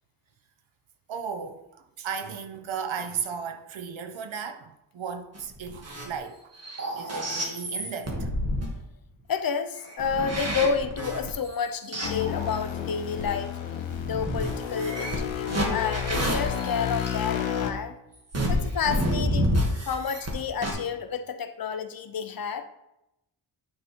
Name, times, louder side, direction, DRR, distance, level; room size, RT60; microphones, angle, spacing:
voice 1, 1.1-1.6 2.0-6.5 7.0-8.3, right 6 dB, 75° right, 0.9 m, -35 dB
sound 1, 5.4-6.2 6.5-8.7 9.8-12.6 13.2-13.3 13.9-17.1 18.3-20.3 20.6-20.7, equal, 30° right, 1.6 m, -29 dB
voice 2, 9.3-13.6 14.0-17.9 18.5-19.5 19.9-22.6, left 6 dB, 50° left, 0.6 m, -30 dB
sound 2, 12.0-17.7, left 9 dB, 70° left, 1.0 m, -31 dB
9.7 x 3.7 x 4.4 m
wide cardioid pair, 145°, 47 cm